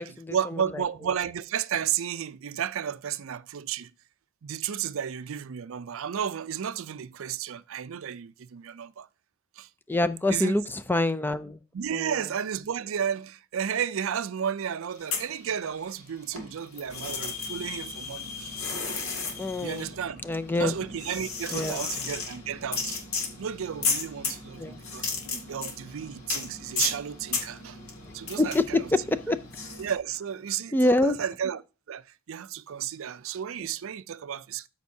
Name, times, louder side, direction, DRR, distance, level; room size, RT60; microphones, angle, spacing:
voice 1, 0.0-3.9 4.4-9.1 9.6-9.7 10.3-10.6 11.7-18.6 19.6-20.2 20.6-23.0 23.4-25.1 25.5-27.8 28.1-28.9 29.8-31.6 31.9-34.7, right 8 dB, 70° right, 0.4 m, -32 dB
voice 2, 9.9-11.6 11.9-12.2 19.4-19.9 20.2-20.7 21.5-21.9 24.6-24.8 28.4-28.8 29.1-29.4 30.7-31.2, left 2 dB, 10° left, 0.4 m, -25 dB
sound 1, 14.9-16.0 16.3-29.9, left 4 dB, 85° left, 2.2 m, -34 dB
13.0 x 5.2 x 2.7 m
head